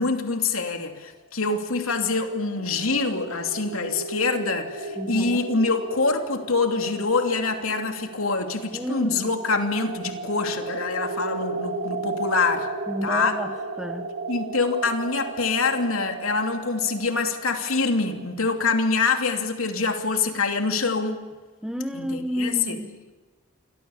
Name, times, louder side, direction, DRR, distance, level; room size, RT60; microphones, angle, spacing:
voice 1, 0.0-12.7 13.0-13.4 14.3-21.2 21.9-22.8, left 4 dB, 80° left, 2.9 m, -25 dB
sound 1, 1.8-18.6, right 3 dB, 55° right, 2.7 m, -35 dB
voice 2, 5.0-5.5 8.7-9.3 12.9-14.1 21.6-23.1, equal, 5° right, 1.4 m, -31 dB
29.0 x 23.0 x 7.3 m
head